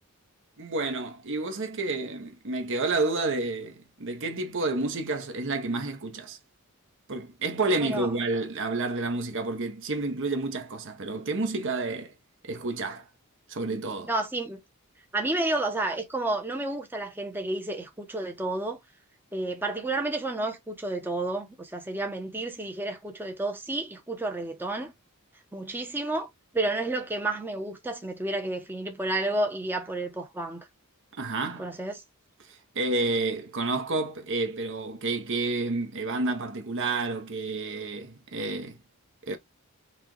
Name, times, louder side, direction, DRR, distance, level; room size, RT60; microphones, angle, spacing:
voice 1, 0.6-6.4 7.1-12.1 12.4-13.0 13.5-14.1 31.2-31.7 32.7-38.8 39.3-39.4, right 3 dB, 60° right, 1.0 m, -30 dB
voice 2, 14.1-14.6 15.1-18.8 19.3-24.9 25.5-26.3 26.5-30.7 31.6-32.0, right 2 dB, 10° right, 0.7 m, -31 dB
5.8 x 2.3 x 3.1 m
head